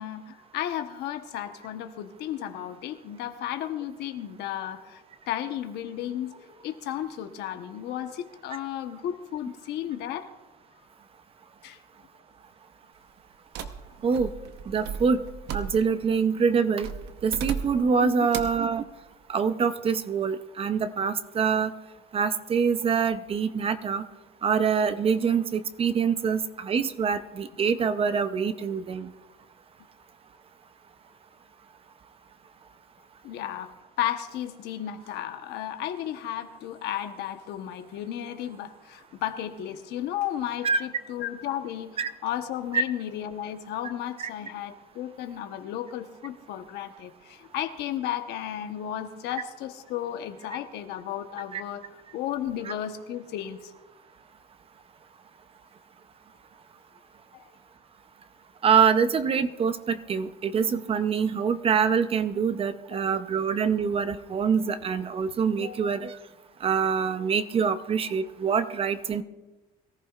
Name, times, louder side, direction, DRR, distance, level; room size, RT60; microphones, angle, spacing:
voice 1, 0.0-5.0 5.3-10.3 11.6-11.8 18.0-18.1 33.2-33.7 34.0-51.8 52.1-53.7 57.3-57.4 62.9-63.2 65.6-65.9, left 11 dB, 80° left, 7 dB, 1.1 m, -34 dB
sound 1, 13.5-16.1 16.8-17.9 18.3-18.7, right 7 dB, 80° right, 1.0 m, -36 dB
voice 2, 14.7-15.2 15.5-16.9 17.2-18.8 19.3-21.7 22.1-24.0 24.4-29.1 40.6-40.8 42.0-42.1 42.7-42.8 44.2-44.3 51.5-51.6 58.6-66.2 66.6-69.2, right 6 dB, 35° right, 11 dB, 0.7 m, -25 dB
23.0 x 14.5 x 2.5 m, 1.2 s
cardioid pair, 125°, 17 cm